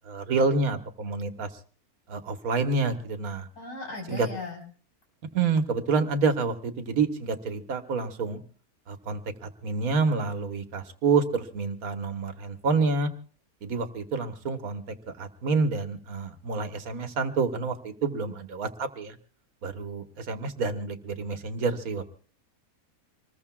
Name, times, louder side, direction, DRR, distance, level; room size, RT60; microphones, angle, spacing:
voice 1, 0.0-1.5 2.1-3.5 4.1-4.3 5.3-8.4 8.9-13.1 13.6-14.8 15.2-19.2 19.6-22.0, right 4 dB, 75° right, 7 dB, 1.7 m, -28 dB
voice 2, 3.6-4.6, left 2 dB, 85° left, 1 dB, 5.0 m, -37 dB
25.5 x 20.5 x 2.4 m, 0.40 s
omnidirectional pair, 1.6 m